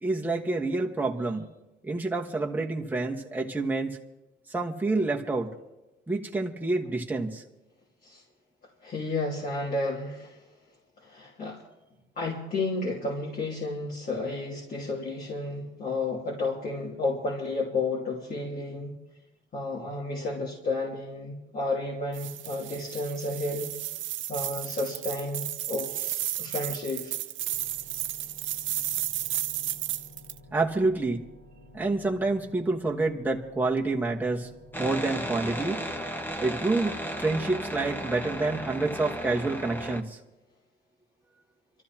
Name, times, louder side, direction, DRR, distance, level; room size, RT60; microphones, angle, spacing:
voice 1, 0.0-1.5 1.8-4.0 4.5-5.5 6.1-7.4 30.5-31.2 31.7-34.5 34.8-35.8 36.4-40.2, right 3 dB, 10° right, -1 dB, 1.4 m, -28 dB
voice 2, 8.8-10.4 11.0-11.6 12.2-18.9 19.5-23.8 24.3-27.1, left 2 dB, 45° left, -4 dB, 2.8 m, -32 dB
sound 1, 22.1-30.4, right 13 dB, 75° right, 0.6 m, -33 dB
sound 2, 27.5-40.0, left 2 dB, 75° left, 5.2 m, -53 dB
sound 3, 34.7-40.0, equal, 10° left, 1.1 m, -35 dB
26.5 x 13.5 x 2.9 m, 1.0 s
cardioid pair, 90°, 20 cm